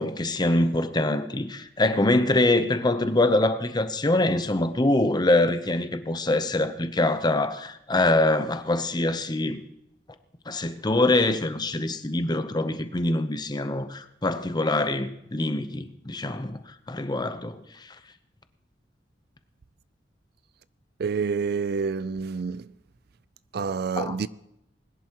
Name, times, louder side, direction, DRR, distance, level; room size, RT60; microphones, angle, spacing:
voice 1, 0.0-9.6 10.5-16.6 16.9-17.9 24.0-24.2, left 2 dB, 25° left, 0.8 m, -24 dB
voice 2, 21.0-22.7 23.5-24.3, right 5 dB, 60° right, 0.4 m, -28 dB
21.0 x 11.0 x 3.0 m
head